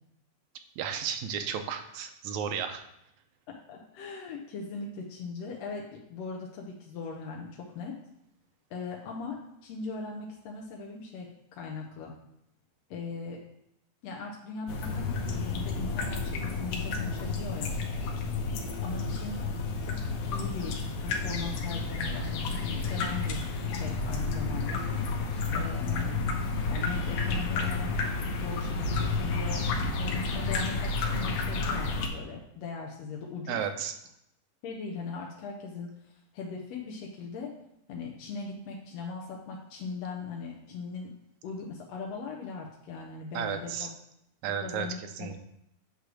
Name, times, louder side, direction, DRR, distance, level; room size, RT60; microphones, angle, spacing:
voice 1, 0.8-2.8 33.5-33.9 43.3-43.9 44.4-45.4, right 8 dB, 75° right, 6 dB, 2.0 m, -33 dB
voice 2, 3.5-8.0 8.7-12.2 12.9-13.4 14.0-17.8 18.8-19.5 19.8-24.9 25.5-26.3 26.7-29.7 30.0-33.6 34.6-37.6 37.9-41.2 41.4-43.9 44.6-45.4, left 4 dB, 70° left, -1 dB, 1.9 m, -39 dB
sound 1, 14.7-32.1, left 3 dB, 90° left, 2.4 m, -31 dB
8.3 x 3.3 x 6.1 m, 0.78 s
omnidirectional pair, 3.5 m